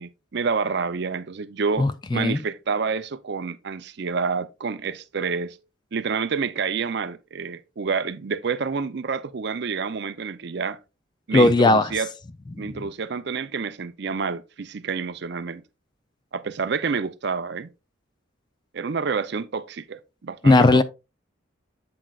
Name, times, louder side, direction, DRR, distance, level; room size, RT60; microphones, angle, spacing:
voice 1, 0.0-5.6 5.9-10.8 11.3-12.1 12.6-15.6 16.3-17.7 18.7-20.8, right 5 dB, 55° right, 0.5 m, -28 dB
voice 2, 1.8-2.4 11.3-11.9 12.7-12.8 20.4-20.8, left 2 dB, 20° left, 0.3 m, -17 dB
7.6 x 6.0 x 2.3 m
head